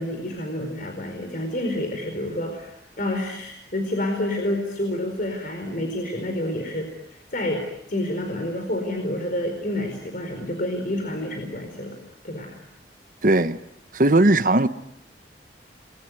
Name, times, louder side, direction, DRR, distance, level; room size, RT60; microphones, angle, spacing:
voice 1, 0.0-12.0 12.2-12.6, left 1 dB, 50° left, 4.6 m, -29 dB
voice 2, 13.2-13.6 13.9-14.7, right 2 dB, 50° right, 1.2 m, -18 dB
29.5 x 21.5 x 9.3 m
head